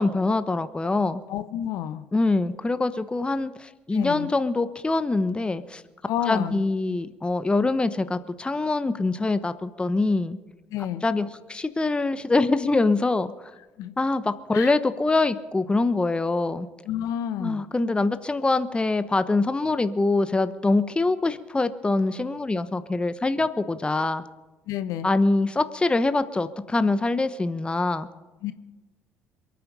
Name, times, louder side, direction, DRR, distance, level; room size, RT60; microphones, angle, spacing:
voice 1, 0.0-1.2 2.1-5.8 6.3-10.4 11.0-13.5 14.0-16.7 17.4-24.2 25.0-28.1, left 3 dB, 15° left, 12 dB, 1.0 m, -24 dB
voice 2, 1.3-2.0 3.9-4.3 6.1-6.6 10.7-11.0 13.8-13.9 14.5-14.7 16.9-17.6 24.7-25.1 28.4-28.5, left 11 dB, 55° left, 11 dB, 1.1 m, -30 dB
27.5 x 9.5 x 5.5 m, 1.1 s
figure-of-eight pair, 55°, 7 cm